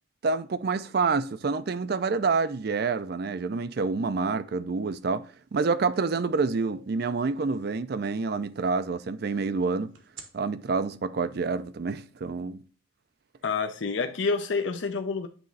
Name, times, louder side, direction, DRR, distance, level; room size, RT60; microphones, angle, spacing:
voice 1, 0.2-9.9 10.3-12.6, right 4 dB, 55° right, 0.4 m, -28 dB
sound 1, 5.1-5.2 5.6-7.3 10.0-10.2, right 2 dB, 75° right, 1.4 m, -43 dB
voice 2, 13.4-15.3, left 4 dB, 70° left, 0.6 m, -28 dB
9.0 x 3.1 x 3.9 m
head